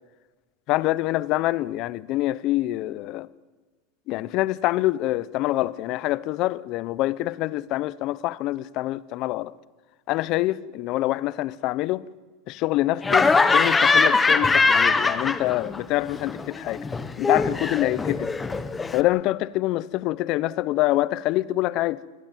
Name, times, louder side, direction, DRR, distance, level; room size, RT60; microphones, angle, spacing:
voice 1, 0.7-3.3 4.1-9.5 10.1-12.0 12.5-16.9 17.2-18.3 18.9-22.0, left 17 dB, 40° left, 0.7 m, -25 dB
Laughter, 13.0-15.8 16.1-19.0, left 4 dB, 10° left, 0.9 m, -21 dB
23.0 x 18.0 x 9.0 m
supercardioid pair, 160°, 0 cm